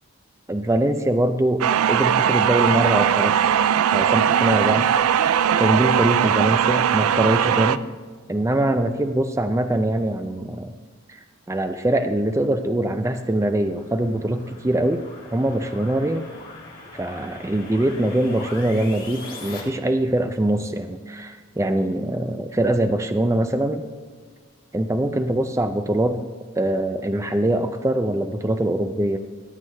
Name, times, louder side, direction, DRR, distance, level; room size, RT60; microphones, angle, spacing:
voice 1, 0.5-3.3 3.9-4.9 5.6-7.8 8.3-10.7 11.5-15.0 15.3-16.2 16.9-23.8 24.7-26.2 26.6-29.2, right 1 dB, 15° right, 8 dB, 0.4 m, -23 dB
sound 1, 1.6-7.8, right 9 dB, 85° right, 0.3 m, -19 dB
sound 2, 13.2-19.6, left 2 dB, 40° left, 2.1 m, -41 dB
13.5 x 8.2 x 3.3 m, 1.5 s
head